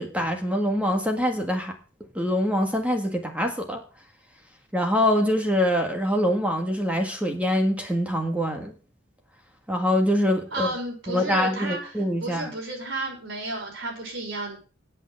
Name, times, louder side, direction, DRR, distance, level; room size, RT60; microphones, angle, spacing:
voice 1, 0.0-1.8 2.2-3.8 4.7-8.7 9.7-10.7 11.1-12.5, equal, 5° right, 4 dB, 1.7 m, -24 dB
voice 2, 10.5-11.9 12.2-14.6, right 2 dB, 65° right, -1 dB, 5.4 m, -32 dB
8.6 x 8.6 x 7.6 m, 0.35 s
head